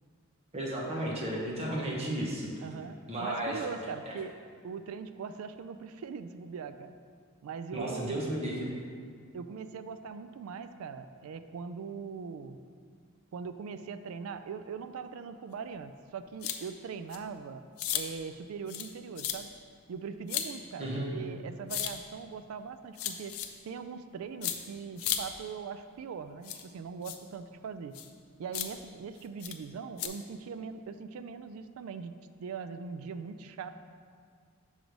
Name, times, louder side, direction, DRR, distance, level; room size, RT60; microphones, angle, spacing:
voice 1, 0.5-2.5 3.1-3.6 4.1-4.2 7.7-8.7 20.8-21.1, right 1 dB, 30° right, -3 dB, 1.0 m, -33 dB
voice 2, 2.6-4.4 4.6-6.9 7.4-8.3 9.3-12.6 13.3-17.6 17.9-19.5 19.9-23.4 23.6-27.9 28.4-32.1 32.4-33.7, right 5 dB, 80° right, 10 dB, 0.3 m, -41 dB
sound 1, 16.4-16.6 17.1-17.2 17.8-18.0 18.7-18.9 19.2-19.4 20.3-20.5 21.7-21.9 23.0-23.5 24.4-24.6 25.0-25.2 26.4-26.6 27.0-27.2 27.9-28.1 28.5-28.7 29.4-29.5 30.0-30.1, left 10 dB, 80° left, 0.4 m, -33 dB
6.3 x 3.1 x 5.2 m, 2.1 s
head